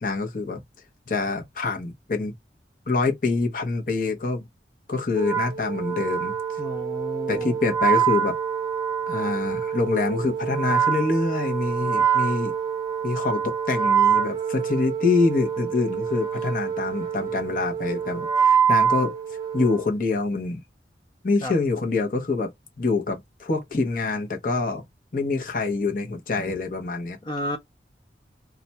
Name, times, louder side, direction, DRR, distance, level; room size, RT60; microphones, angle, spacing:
voice 1, 0.0-0.6 1.1-2.3 2.9-4.4 4.9-6.3 7.3-8.4 9.1-12.5 13.0-19.1 19.5-20.6 21.2-22.5 22.8-24.8 25.1-27.2, left 3 dB, 50° left, 0.8 m, -25 dB
Wind instrument woodwind instrument, 5.1-19.9, right 8 dB, 20° right, 0.7 m, -25 dB
voice 2, 6.6-7.6 21.4-21.5 27.2-27.6, left 1 dB, 25° left, 0.5 m, -32 dB
2.4 x 2.2 x 4.0 m
head